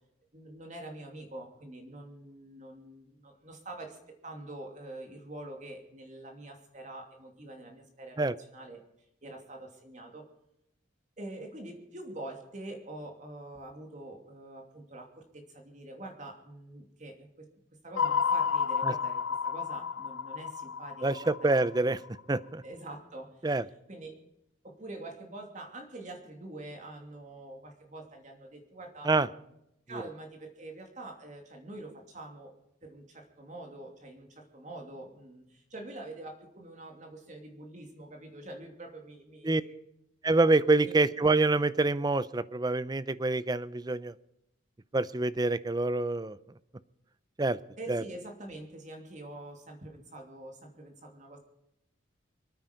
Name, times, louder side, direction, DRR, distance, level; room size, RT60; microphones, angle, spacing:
voice 1, 0.3-8.8 9.2-10.2 11.2-17.5 17.8-21.7 22.6-23.6 23.9-24.2 24.6-29.4 29.9-32.5 32.8-39.8 40.8-41.0 47.8-51.4, right 2 dB, 40° right, 2 dB, 2.7 m, -45 dB
sound 1, 18.0-22.2, left 6 dB, 90° left, 0.7 m, -31 dB
voice 2, 21.0-22.0 22.3-22.6 23.4-23.6 29.1-29.3 39.4-39.6 40.2-44.1 44.9-46.4 47.4-47.6 47.9-48.0, right 2 dB, 20° right, 17 dB, 0.5 m, -26 dB
25.5 x 9.4 x 5.2 m, 0.82 s
head